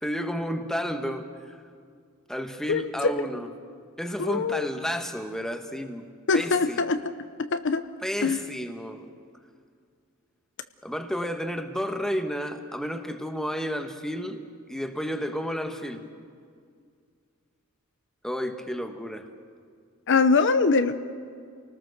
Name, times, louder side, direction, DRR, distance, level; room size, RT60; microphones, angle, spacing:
voice 1, 0.0-1.6 2.3-3.5 4.0-6.1 6.3-6.8 8.0-9.1 10.8-16.1 18.2-19.3, equal, ahead, 6 dB, 1.4 m, -31 dB
voice 2, 2.7-3.1 4.2-4.7 6.3-7.0 7.4-7.8 8.2-8.4 20.1-20.9, left 4 dB, 55° left, 10 dB, 0.8 m, -23 dB
29.0 x 19.5 x 6.6 m, 2.2 s
head